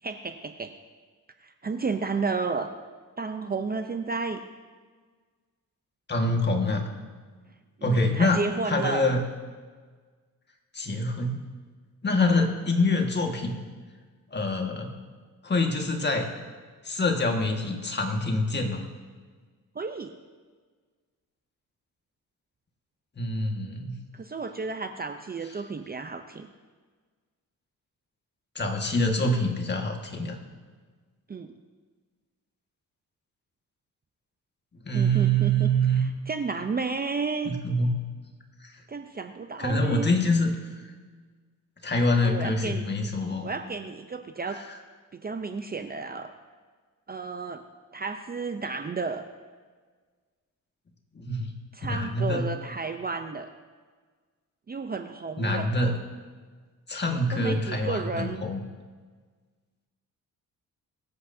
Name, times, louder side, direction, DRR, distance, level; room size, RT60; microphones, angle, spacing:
voice 1, 0.0-0.7 1.4-2.7 3.2-4.4 7.8-9.1 19.7-20.1 24.1-26.5 31.3-31.5 34.9-37.5 38.9-40.1 42.1-42.9 43.4-44.6 45.1-46.3 47.1-47.6 47.9-49.2 51.7-53.5 54.7-55.7 57.3-58.4, right 4 dB, 30° right, 7 dB, 0.6 m, -32 dB
voice 2, 6.1-6.8 7.8-8.4 8.7-9.2 10.7-11.4 12.0-13.6 14.3-14.9 15.4-16.3 16.8-18.8 23.2-23.9 28.6-30.4 34.9-36.0 37.5-37.9 38.6-38.7 39.6-40.9 41.8-43.5 44.5-44.6 51.2-51.5 51.9-52.5 55.4-56.0 56.9-58.6, left 1 dB, 30° left, 2 dB, 1.7 m, -25 dB
23.5 x 8.0 x 2.7 m, 1.5 s
cardioid pair, 95°, 33 cm